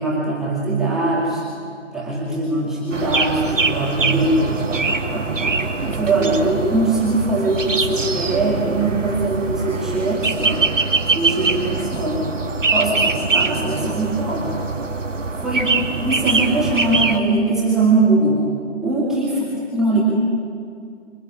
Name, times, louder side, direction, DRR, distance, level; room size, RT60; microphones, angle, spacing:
voice 1, 0.0-1.4 1.9-5.6 5.9-10.6 11.1-12.3 12.7-14.5 15.4-15.7 16.0-18.4 18.8-19.3 19.7-20.0, right 2 dB, ahead, -8 dB, 2.3 m, -21 dB
sound 1, 2.9-17.2, right 3 dB, 80° right, 2.5 m, -23 dB
26.5 x 23.0 x 9.5 m, 2.3 s
figure-of-eight pair, 165°, 37 cm